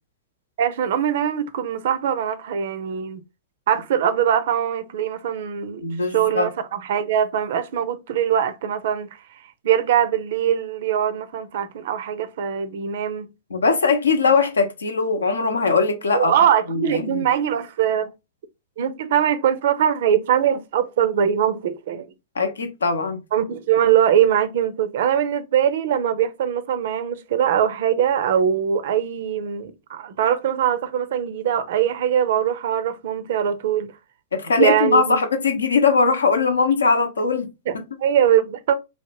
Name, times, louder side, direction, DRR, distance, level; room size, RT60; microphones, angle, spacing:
voice 1, 0.6-3.2 3.7-13.3 16.1-18.1 18.8-22.1 23.3-33.9 34.6-35.2 37.7-38.7, right 9 dB, 60° right, 0.5 m, -22 dB
voice 2, 5.8-6.5 13.5-16.3 16.7-17.2 22.4-23.2 34.3-37.5, left 4 dB, 80° left, 0.7 m, -20 dB
3.1 x 2.1 x 2.9 m
figure-of-eight pair, 105°, 0 cm